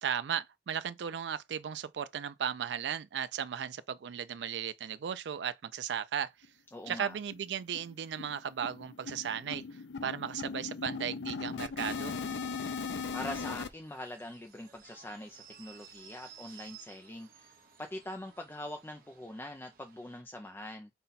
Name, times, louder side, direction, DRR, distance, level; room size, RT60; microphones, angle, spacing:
voice 1, 0.0-6.3 6.9-9.6 10.0-12.2, right 8 dB, 80° right, 0.4 m, -36 dB
sound 1, 6.4-6.5 6.9-7.0 7.3-7.5 7.7-13.7, left 4 dB, 90° left, 0.5 m, -38 dB
voice 2, 6.7-7.2 13.1-20.9, left 1 dB, 15° left, 0.4 m, -43 dB
sound 2, 13.3-20.2, right 8 dB, 55° right, 0.8 m, -56 dB
5.4 x 2.3 x 4.0 m
head